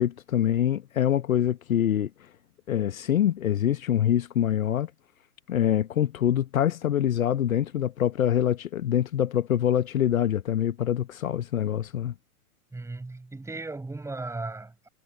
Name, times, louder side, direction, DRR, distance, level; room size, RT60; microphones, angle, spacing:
voice 1, 0.0-2.3 2.7-4.9 5.5-12.1, left 10 dB, 65° left, 1.3 m, -25 dB
voice 2, 12.7-14.9, right 3 dB, 5° right, 5.7 m, -36 dB
figure-of-eight pair, 105°, 45 cm